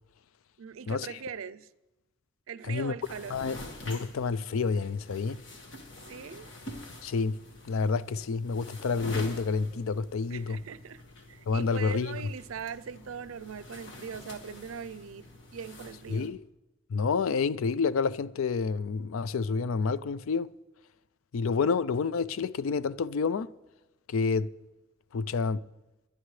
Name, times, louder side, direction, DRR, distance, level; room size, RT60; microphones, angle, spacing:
voice 1, 0.6-1.7 2.5-3.4 6.1-6.5 10.3-11.0 11.3-16.4, right 6 dB, 80° right, 0.5 m, -41 dB
sound 1, 3.0-16.3, left 1 dB, 60° left, 1.7 m, -46 dB
voice 2, 3.9-5.4 7.0-7.4 7.6-10.6 11.5-12.2 16.1-16.4 16.9-20.5 21.3-23.5 24.1-24.5 25.1-25.6, left 5 dB, 80° left, 0.4 m, -29 dB
22.5 x 10.5 x 3.2 m
head